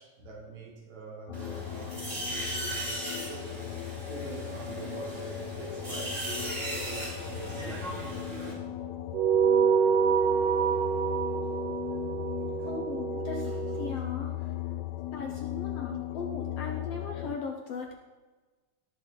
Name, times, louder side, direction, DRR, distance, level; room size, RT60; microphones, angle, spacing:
voice 1, 0.0-3.7 4.1-8.7 9.8-10.0 10.7-11.3 11.6-12.0 12.6-12.7, right 4 dB, 65° right, -1 dB, 3.2 m, -45 dB
sound 1, 1.3-17.4, left 12 dB, 85° left, 2.1 m, -38 dB
sound 2, 1.3-8.5, right 1 dB, 20° right, 3.8 m, -38 dB
sound 3, 9.1-13.9, right 7 dB, 80° right, 1.4 m, -27 dB
voice 2, 12.6-14.3 15.1-18.0, left 4 dB, 65° left, 2 dB, 1.7 m, -38 dB
18.0 x 6.2 x 3.8 m, 1.3 s
omnidirectional pair, 3.5 m